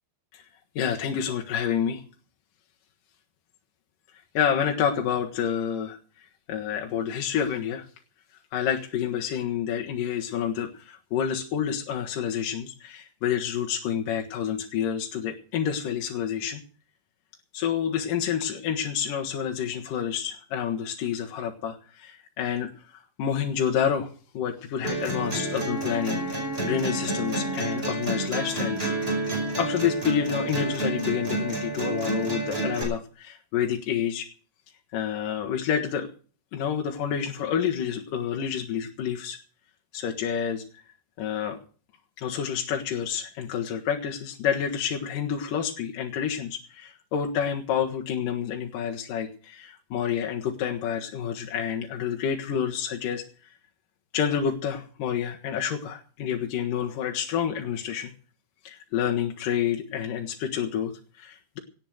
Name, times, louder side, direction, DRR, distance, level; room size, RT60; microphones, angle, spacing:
voice 1, 0.8-2.0 4.3-6.0 6.5-7.8 8.5-16.6 17.5-24.1 24.3-28.9 29.6-34.3 34.9-36.1 36.5-39.4 39.9-40.6 41.2-41.6 42.2-53.2 54.1-58.1 58.6-61.6, left 8 dB, 65° left, 2 dB, 2.8 m, -28 dB
sound 1, 24.8-32.8, right 2 dB, 15° right, 5.5 m, -29 dB
18.0 x 9.1 x 6.3 m, 0.41 s
omnidirectional pair, 4.4 m